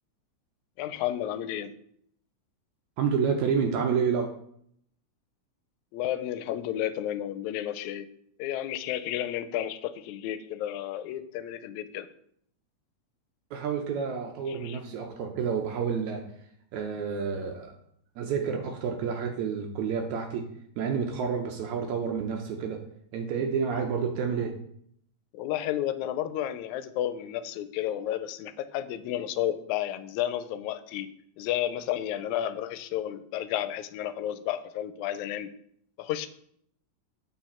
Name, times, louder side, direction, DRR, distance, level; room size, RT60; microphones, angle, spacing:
voice 1, 0.8-1.7 5.9-8.1 8.4-12.1 14.5-14.8 25.3-31.1 31.4-35.5 36.0-36.3, left 12 dB, 90° left, 12 dB, 1.9 m, -32 dB
voice 2, 3.0-4.3 13.5-16.2 16.7-17.7 18.2-20.5 20.8-22.8 23.1-24.5, right 6 dB, 80° right, 2 dB, 2.1 m, -29 dB
8.4 x 4.8 x 4.3 m, 0.68 s
omnidirectional pair, 3.3 m